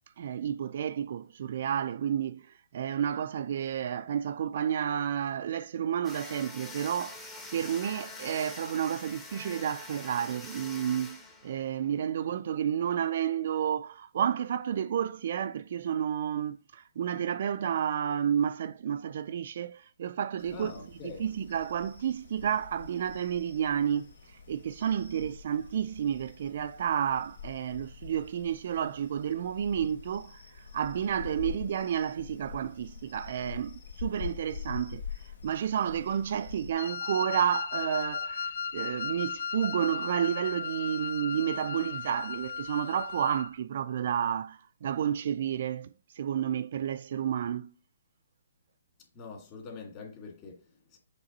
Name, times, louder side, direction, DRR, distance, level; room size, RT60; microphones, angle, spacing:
voice 1, 0.2-7.2 7.5-20.7 21.0-24.1 24.5-35.0 35.4-47.7, right 9 dB, 50° right, 0.3 m, -31 dB
sound 1, 6.0-12.0, left 3 dB, 10° left, 0.9 m, -45 dB
sound 2, 20.4-36.7, left 7 dB, 80° left, 2.3 m, -45 dB
voice 2, 20.5-21.3 49.1-51.0, left 4 dB, 25° left, 2.1 m, -44 dB
Wind instrument woodwind instrument, 36.8-43.5, left 6 dB, 60° left, 0.4 m, -36 dB
7.2 x 3.3 x 4.0 m
hypercardioid pair, 150°, 0 cm